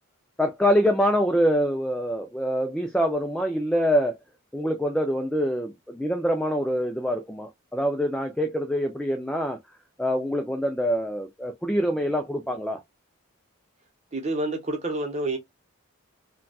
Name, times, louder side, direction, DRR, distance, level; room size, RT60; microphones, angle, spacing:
voice 1, 0.4-4.2 4.5-9.6 10.0-12.8, equal, 5° left, 0.3 m, -25 dB
voice 2, 14.1-15.4, right 2 dB, 30° right, 0.8 m, -28 dB
3.8 x 2.3 x 2.2 m
head